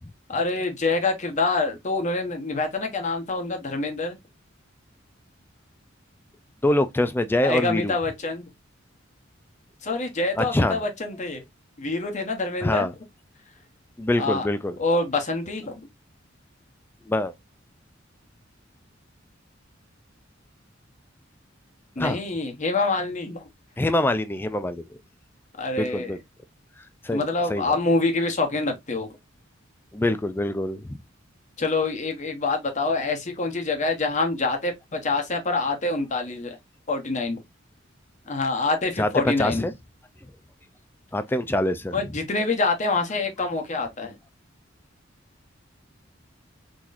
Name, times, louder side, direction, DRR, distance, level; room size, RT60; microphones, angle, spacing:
voice 1, 0.3-4.2 7.4-8.5 9.8-11.4 11.8-12.9 14.2-14.5 14.8-15.9 22.0-23.4 25.6-26.1 27.1-29.1 31.6-36.6 36.9-37.4 38.3-39.6 41.9-44.1, left 3 dB, 40° left, 0.9 m, -26 dB
voice 2, 6.6-8.0 10.3-10.8 12.6-12.9 14.0-14.8 17.1-17.3 22.0-22.2 23.8-25.0 25.8-26.2 27.0-27.8 29.9-31.0 39.0-39.7 41.1-41.9, left 1 dB, 10° left, 0.3 m, -24 dB
3.8 x 3.0 x 2.5 m
head